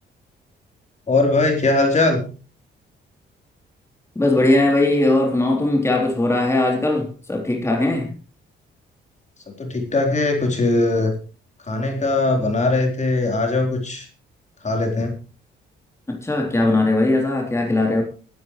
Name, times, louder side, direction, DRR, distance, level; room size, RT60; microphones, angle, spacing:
voice 1, 1.1-2.2 9.6-11.2 11.7-14.1 14.6-15.1, left 2 dB, 35° left, 3 dB, 4.1 m, -20 dB
voice 2, 4.2-8.1 16.1-18.0, left 2 dB, 15° left, 1 dB, 3.5 m, -19 dB
21.0 x 12.0 x 3.2 m, 0.36 s
cardioid pair, 90°, 20 cm